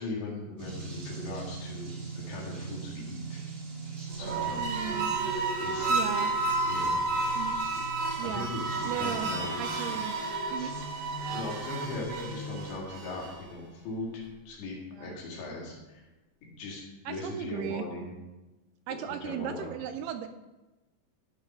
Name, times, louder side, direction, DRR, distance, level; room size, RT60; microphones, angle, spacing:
voice 1, 0.0-3.4 4.2-5.1 5.6-6.0 6.6-7.0 8.2-9.6 9.8-10.0 11.3-16.0 16.4-18.1 18.9-19.7, left 2 dB, 80° left, -2 dB, 4.3 m, -39 dB
sound 1, 0.6-12.8, right 3 dB, 35° right, 3.0 m, -42 dB
sound 2, 4.1-13.5, right 3 dB, 65° right, 2.1 m, -31 dB
voice 2, 4.5-5.2 5.9-6.3 7.4-7.6 8.2-8.5 8.9-9.3 9.6-10.1 10.5-10.7 15.0-15.2 17.1-17.9 18.9-20.3, right 10 dB, 80° right, 8 dB, 2.4 m, -36 dB
13.0 x 5.3 x 5.6 m, 1.1 s
omnidirectional pair, 5.0 m